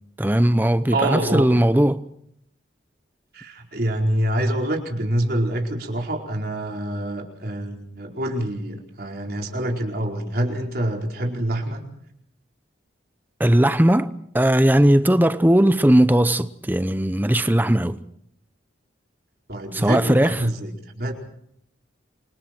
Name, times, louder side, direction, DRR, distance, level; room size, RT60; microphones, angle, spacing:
voice 1, 0.2-2.0 13.4-18.0 19.7-20.5, right 1 dB, 10° right, 0.8 m, -18 dB
voice 2, 0.9-1.5 3.3-11.8 19.5-21.1, right 1 dB, 50° right, 4.6 m, -26 dB
28.5 x 25.5 x 4.5 m
head